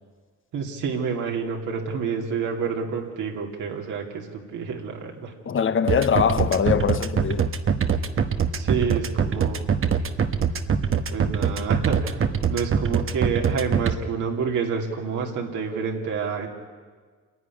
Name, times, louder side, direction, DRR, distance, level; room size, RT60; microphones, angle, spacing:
voice 1, 0.5-5.3 8.5-9.6 11.1-16.5, right 6 dB, 80° right, 3.0 m, -28 dB
voice 2, 5.4-7.5, left 7 dB, 45° left, 1.1 m, -22 dB
sound 1, 5.9-13.9, right 7 dB, 45° right, 1.2 m, -22 dB
27.0 x 11.0 x 9.9 m
cardioid pair, 90°, 30 cm